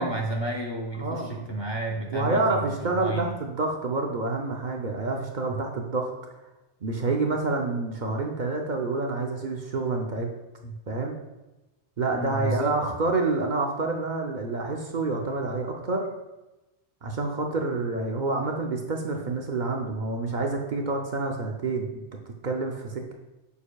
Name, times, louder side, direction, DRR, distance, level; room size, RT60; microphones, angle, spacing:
voice 1, 0.0-3.3 5.5-5.6 10.6-10.8 12.1-12.8, right 2 dB, 35° left, 1 dB, 0.5 m, -31 dB
voice 2, 1.0-1.5 2.1-6.1 6.8-10.3 10.9-11.2 12.0-16.1 17.0-22.0 22.4-23.1, right 3 dB, 50° right, 2 dB, 0.7 m, -28 dB
7.1 x 6.8 x 2.3 m, 1.0 s
omnidirectional pair, 1.2 m